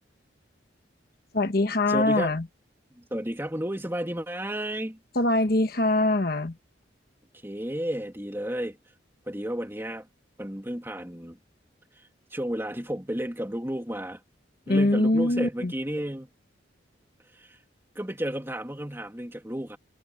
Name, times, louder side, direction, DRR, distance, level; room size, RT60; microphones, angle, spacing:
voice 1, 1.3-2.5 5.1-6.6 14.7-15.7, left 2 dB, 50° left, 1.2 m, -23 dB
voice 2, 1.9-2.3 3.0-5.0 7.4-8.8 9.3-10.1 10.4-11.4 12.0-14.2 14.7-16.3 17.3-17.6 17.9-19.8, equal, 10° right, 2.9 m, -32 dB
head